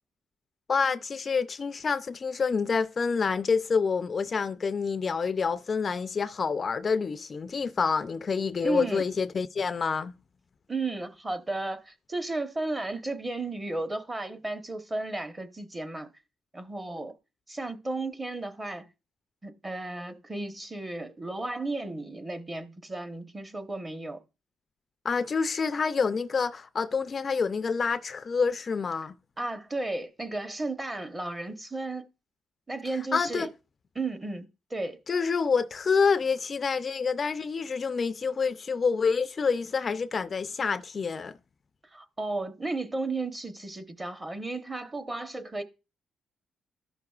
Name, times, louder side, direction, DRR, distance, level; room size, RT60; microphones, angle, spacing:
voice 1, 0.7-10.1 25.0-29.1 33.1-33.5 35.1-41.3, left 5 dB, 40° left, 0.4 m, -27 dB
voice 2, 8.6-9.1 10.7-16.1 16.5-17.1 17.5-18.9 19.4-24.2 29.4-32.1 32.7-33.5 33.9-35.0 41.9-45.6, right 2 dB, 20° right, 1.0 m, -34 dB
14.0 x 5.9 x 2.4 m
cardioid pair, 90°, 0 cm